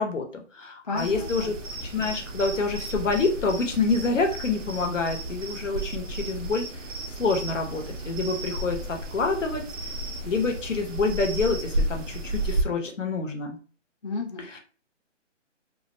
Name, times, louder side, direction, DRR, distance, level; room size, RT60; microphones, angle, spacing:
voice 1, 0.0-1.5 1.8-9.6 10.2-13.6, left 3 dB, 75° left, 3 dB, 0.9 m, -27 dB
voice 2, 0.8-1.5 14.0-14.6, left 3 dB, 40° left, -1 dB, 0.4 m, -33 dB
sound 1, 1.0-12.6, right 1 dB, 85° right, 0.7 m, -33 dB
2.5 x 2.1 x 2.6 m, 0.37 s
hypercardioid pair, 160°, 37 cm